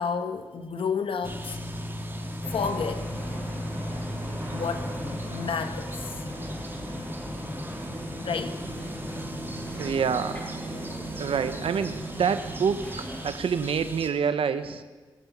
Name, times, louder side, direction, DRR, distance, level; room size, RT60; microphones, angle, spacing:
voice 1, 0.0-1.6 2.5-3.1 4.5-6.2 8.2-8.6 10.7-11.0, left 6 dB, 70° left, 8 dB, 1.0 m, -31 dB
sound 1, 1.2-14.1, right 1 dB, 25° right, 2.4 m, -37 dB
sound 2, 2.4-13.3, left 1 dB, 20° left, 5.5 m, -38 dB
voice 2, 9.7-10.5 11.2-12.8 13.2-14.8, right 6 dB, 75° right, 11 dB, 0.8 m, -27 dB
18.5 x 7.1 x 9.3 m, 1.4 s
cardioid pair, 55°, 9 cm